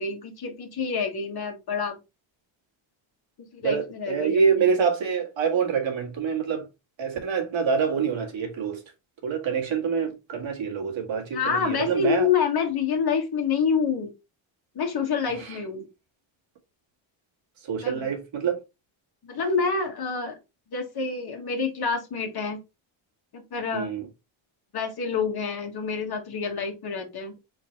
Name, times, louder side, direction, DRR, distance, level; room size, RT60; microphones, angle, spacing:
voice 1, 0.0-2.0 3.5-4.7 11.3-14.1 14.7-15.9 17.8-18.2 19.2-20.4 20.7-22.6 23.3-23.9 24.7-27.3, left 5 dB, 50° left, 1.5 m, -27 dB
voice 2, 3.6-6.6 7.0-8.8 9.2-12.3 17.7-18.6 23.7-24.0, right 6 dB, 65° right, 1.7 m, -26 dB
4.0 x 3.9 x 3.0 m
cardioid pair, 100°, 49 cm